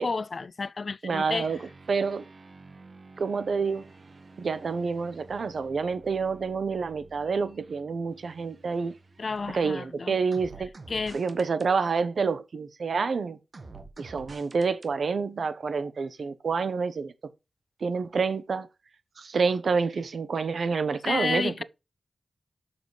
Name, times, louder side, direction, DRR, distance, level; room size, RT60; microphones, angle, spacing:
voice 1, 0.0-1.5 9.2-10.2 10.9-11.2 21.1-21.6, left 4 dB, 55° left, 0.3 m, -31 dB
voice 2, 1.0-1.6 1.9-2.2 3.2-3.9 4.4-8.9 9.5-10.7 11.1-13.4 14.0-17.1 17.8-18.7 19.2-21.6, right 5 dB, 75° right, 1.0 m, -28 dB
sound 1, 1.2-9.8 10.3-11.7 13.5-14.9, right 3 dB, 50° right, 1.4 m, -50 dB
7.2 x 6.9 x 3.3 m
wide cardioid pair, 85°, 0 cm